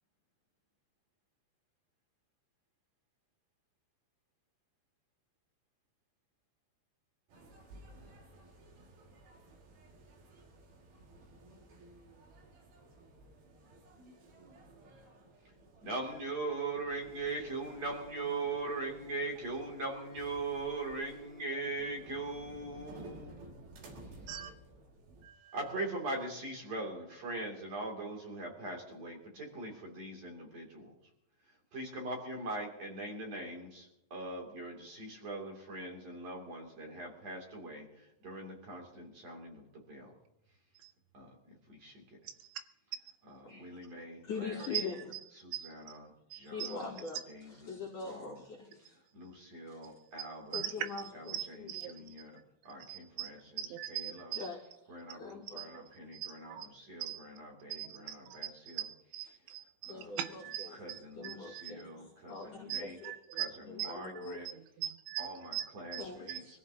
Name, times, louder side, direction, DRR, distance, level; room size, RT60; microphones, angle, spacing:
sound 1, 7.3-25.3, right 2 dB, 60° right, 3.6 m, -55 dB
voice 1, 15.8-23.4 25.5-30.9 31.7-37.9 38.2-40.1 41.1-42.0 43.3-44.7 45.4-46.0 46.3-46.8 47.3-47.8 48.0-48.4 49.1-50.7 51.1-52.4 52.6-54.3 54.9-58.8 59.8-60.2 60.7-63.0 63.3-63.5 63.7-64.5 65.2-66.6, right 2 dB, 40° right, 0 dB, 3.4 m, -41 dB
voice 2, 25.2-25.6 40.8-40.9 42.5-42.6 44.7-44.8 45.1-45.2 45.5-45.7 46.3-46.8 50.5-50.7 51.3-51.9 52.9-53.3 53.6-54.5 55.6-55.8 56.1-56.7 57.0-57.2 57.7-61.7 62.7-63.5 63.8-64.2 64.8-66.4, right 11 dB, 85° right, 9 dB, 3.2 m, -41 dB
voice 3, 44.2-45.1 46.4-48.9 49.7-49.9 50.5-52.1 54.3-54.6 54.9-55.7 59.9-60.8 61.1-63.1 63.7-64.4 66.0-66.6, left 4 dB, 40° left, -1 dB, 3.0 m, -43 dB
24.0 x 14.5 x 2.8 m, 0.81 s
omnidirectional pair, 5.4 m